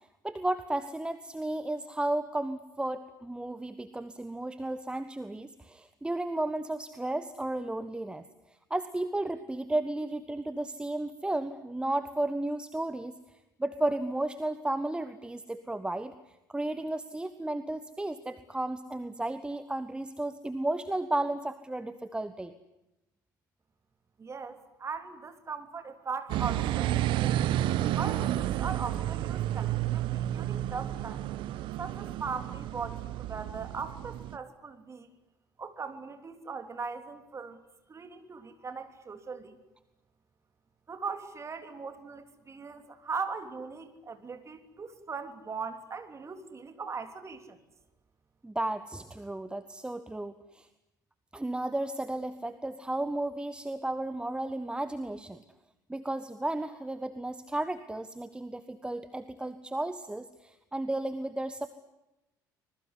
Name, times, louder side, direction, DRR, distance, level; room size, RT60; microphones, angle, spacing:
voice 1, 0.2-8.2 8.7-13.1 13.6-16.1 16.5-22.5 48.4-50.7 51.3-55.4 55.9-61.7, right 1 dB, 10° right, 12 dB, 1.3 m, -33 dB
voice 2, 24.2-26.9 27.1-27.5 28.0-31.2 31.8-35.1 35.6-37.6 37.9-39.6 40.9-47.6, right 5 dB, 25° right, 8 dB, 3.3 m, -39 dB
sound 1, 26.3-34.4, right 13 dB, 50° right, 1.1 m, -31 dB
25.5 x 21.0 x 9.8 m, 0.95 s
figure-of-eight pair, 55°, 11 cm